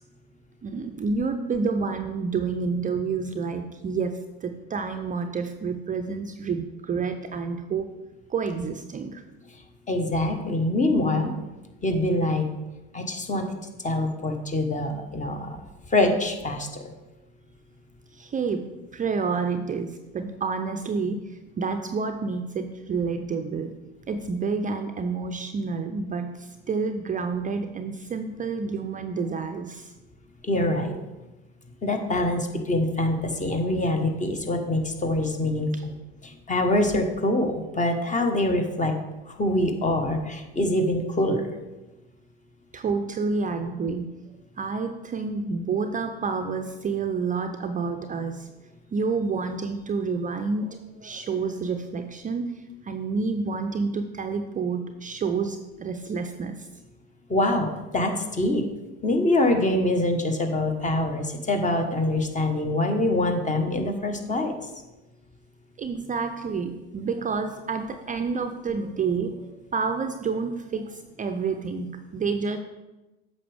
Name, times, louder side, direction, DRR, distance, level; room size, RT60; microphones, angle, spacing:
voice 1, 0.6-7.9 8.3-9.2 18.1-18.7 18.9-23.8 24.1-29.9 35.7-35.8 42.7-44.2 44.6-48.5 48.9-56.7 65.8-72.6, right 4 dB, 25° right, 7 dB, 0.5 m, -29 dB
voice 2, 9.9-11.3 11.8-12.5 12.9-13.4 13.8-15.6 15.9-16.8 30.4-30.9 31.8-35.9 36.5-39.0 39.4-41.4 57.3-58.6 59.0-64.5, left 1 dB, 25° left, 5 dB, 1.2 m, -24 dB
8.5 x 6.3 x 3.4 m, 1.1 s
hypercardioid pair, 75°, 31 cm